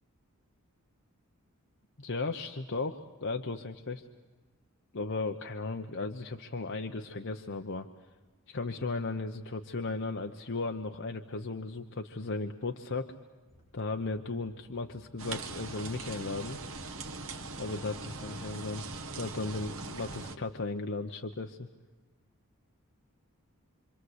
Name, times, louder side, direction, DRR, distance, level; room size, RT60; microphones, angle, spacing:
voice 1, 2.0-4.1 4.9-7.9 8.5-13.1 13.7-16.6 17.6-18.9 19.1-21.7, left 3 dB, 55° left, 4 dB, 1.0 m, -36 dB
sound 1, 13.5-19.4, left 1 dB, 30° left, 4.2 m, -62 dB
sound 2, 15.2-20.4, right 3 dB, 60° right, 1.6 m, -41 dB
26.5 x 26.0 x 8.1 m, 1.3 s
head